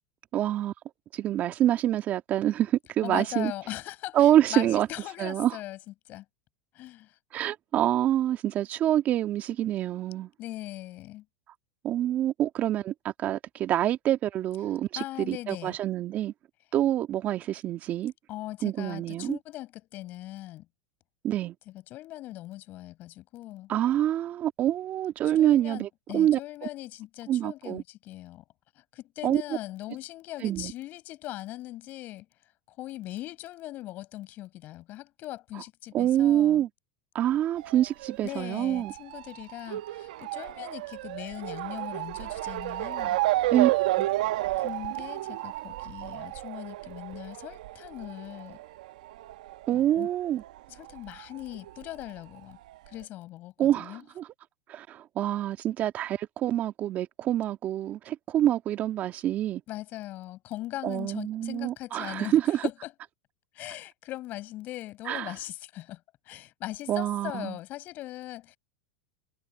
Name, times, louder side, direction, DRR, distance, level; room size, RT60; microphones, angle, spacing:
voice 1, 0.3-0.7 1.1-3.5 4.1-4.9 5.2-5.5 7.3-10.3 11.8-16.3 16.7-18.1 18.6-19.4 21.2-21.6 23.7-26.4 27.3-27.8 29.2-29.4 30.4-30.7 35.9-36.7 37.1-38.9 43.5-44.1 49.7-50.4 53.6-54.3 54.7-59.6 60.8-62.6 65.1-65.3 66.9-67.6, right 12 dB, 40° right, 2.0 m, -26 dB
voice 2, 3.0-5.8 6.1-6.3 6.7-7.2 10.4-11.3 15.0-15.8 18.3-20.7 21.7-23.7 25.4-28.4 28.8-32.3 32.8-36.7 38.2-43.2 44.6-48.6 49.7-50.1 50.7-52.6 52.9-54.0 59.7-62.9 63.5-66.0 66.3-68.6, left 16 dB, 45° left, 7.0 m, -40 dB
Motor vehicle (road) / Siren, 37.6-50.6 50.8-52.0 52.7-52.8 53.0-53.1, right 17 dB, 75° right, 1.0 m, -32 dB
supercardioid pair, 115°, 4 cm